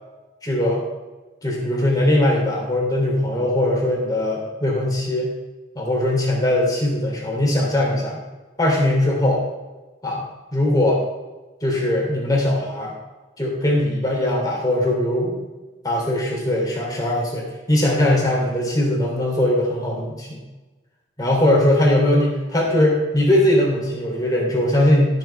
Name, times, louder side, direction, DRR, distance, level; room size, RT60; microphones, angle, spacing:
voice 1, 0.4-0.8 1.4-5.3 5.7-8.2 8.6-9.4 10.0-10.2 10.5-11.0 11.6-12.9 13.4-15.5 15.8-20.4 21.2-25.2, left 1 dB, 20° left, -2 dB, 3.0 m, -20 dB
19.0 x 6.8 x 3.4 m, 1.2 s
head